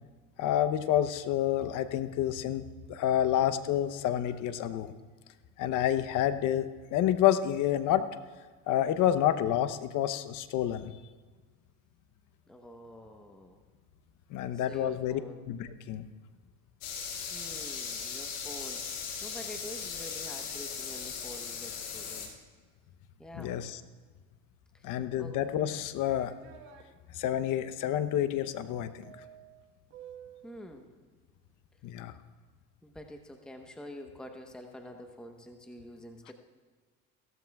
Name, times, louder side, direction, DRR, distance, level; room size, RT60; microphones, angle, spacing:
voice 1, 0.4-4.9 5.6-8.0 8.7-10.9 14.3-15.2 15.5-16.1 23.3-23.8 24.8-26.3 27.1-29.1 31.8-32.1, left 11 dB, 55° left, 11 dB, 0.8 m, -29 dB
voice 2, 12.5-13.6 14.5-15.4 17.3-22.3 23.2-23.5 24.7-25.4 30.4-31.0 32.8-36.3, equal, ahead, 4 dB, 0.9 m, -47 dB
sound 1, 16.8-22.3, left 6 dB, 75° left, 2.1 m, -38 dB
sound 2, 25.6-26.8 29.0-30.6, right 9 dB, 85° right, 1.5 m, -52 dB
16.5 x 13.5 x 2.3 m, 1.4 s
supercardioid pair, 95°, 36 cm